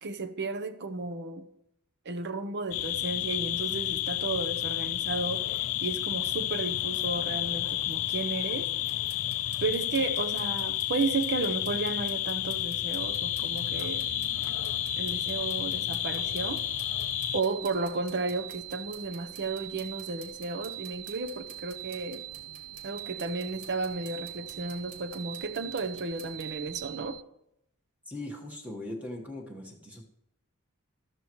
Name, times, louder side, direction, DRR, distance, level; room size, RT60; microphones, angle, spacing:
voice 1, 0.0-1.5 2.0-8.7 9.6-14.1 15.0-16.6 17.3-22.2 22.8-27.2, right 3 dB, 50° right, 0.8 m, -33 dB
sound 1, 2.7-17.4, left 14 dB, 70° left, 0.4 m, -31 dB
sound 2, 8.9-26.5, right 4 dB, 85° right, 1.7 m, -54 dB
sound 3, 13.0-27.2, right 16 dB, 70° right, 0.3 m, -43 dB
voice 2, 28.0-30.1, left 1 dB, 5° right, 1.3 m, -40 dB
13.5 x 13.0 x 3.1 m
head